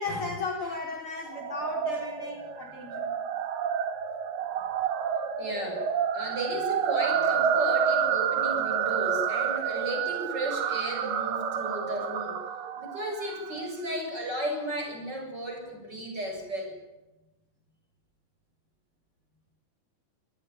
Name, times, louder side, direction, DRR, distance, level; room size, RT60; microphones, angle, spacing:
voice 1, 0.0-3.1, left 3 dB, 40° left, 2 dB, 4.9 m, -35 dB
sound 1, 1.3-13.7, right 8 dB, 85° right, 3.5 m, -29 dB
voice 2, 5.4-5.9 6.1-12.4 12.8-16.7, equal, 30° right, 2 dB, 8.0 m, -34 dB
26.0 x 19.0 x 9.2 m, 1.0 s
omnidirectional pair, 3.8 m